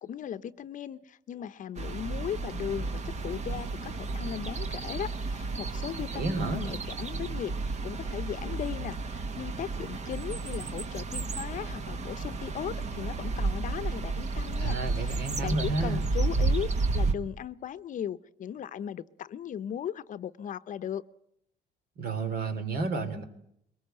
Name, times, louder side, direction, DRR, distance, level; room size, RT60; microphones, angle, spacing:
voice 1, 0.0-21.0, left 9 dB, 50° left, 13 dB, 0.8 m, -37 dB
sound 1, 1.8-17.1, right 3 dB, 40° right, 1.6 m, -32 dB
voice 2, 6.1-6.6 14.6-16.0 22.0-23.2, right 3 dB, 65° right, 8 dB, 3.2 m, -31 dB
23.0 x 20.0 x 7.8 m, 0.73 s
cardioid pair, 110°, 17 cm